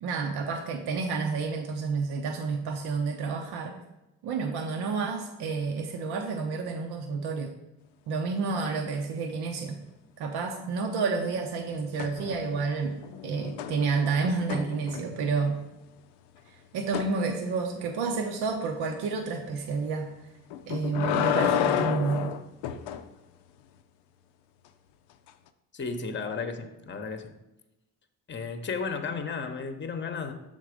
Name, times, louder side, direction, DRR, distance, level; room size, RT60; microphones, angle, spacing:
voice 1, 0.0-3.8 4.2-7.5 8.1-9.8 10.2-13.0 13.2-15.6 16.7-20.1 20.7-22.3, right 4 dB, 70° right, 3 dB, 0.8 m, -30 dB
sound 1, 12.0-12.6 13.0-15.3 16.9-17.1 20.5-23.0 25.3-25.4, left 9 dB, 85° left, 0.5 m, -30 dB
voice 2, 25.7-27.4 28.3-30.3, left 5 dB, 30° left, 8 dB, 0.8 m, -34 dB
6.5 x 3.7 x 5.0 m, 0.96 s
supercardioid pair, 65°, 40 cm